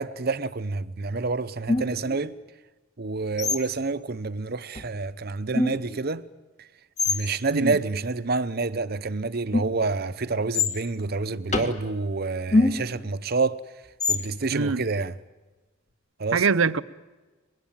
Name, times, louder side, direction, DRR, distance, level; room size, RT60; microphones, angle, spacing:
voice 1, 0.0-2.4 3.0-6.2 7.1-13.6 14.1-15.1 16.2-16.4, right 3 dB, 50° right, 0.8 m, -28 dB
sound 1, 1.7-2.2 3.4-3.8 4.8-4.9 5.5-6.0 7.0-7.2 9.5-9.9 10.5-10.8 11.5-11.8 12.5-13.0 14.0-14.3, left 3 dB, 35° left, 2.0 m, -25 dB
voice 2, 14.5-14.8 16.3-16.8, right 5 dB, 80° right, 0.7 m, -23 dB
24.0 x 21.5 x 9.1 m
head